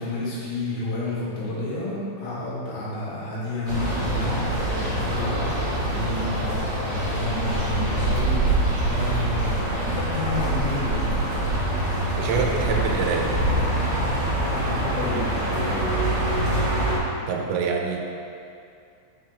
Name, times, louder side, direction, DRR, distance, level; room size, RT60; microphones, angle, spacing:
voice 1, 0.0-11.2 14.5-16.1, left 2 dB, 70° left, -8 dB, 4.3 m, -31 dB
sound 1, 3.7-17.0, right 1 dB, 60° right, 1.1 m, -25 dB
voice 2, 12.2-13.3 17.3-18.0, right 5 dB, 80° right, 1 dB, 2.9 m, -25 dB
9.8 x 6.3 x 3.6 m, 2.5 s
omnidirectional pair, 5.5 m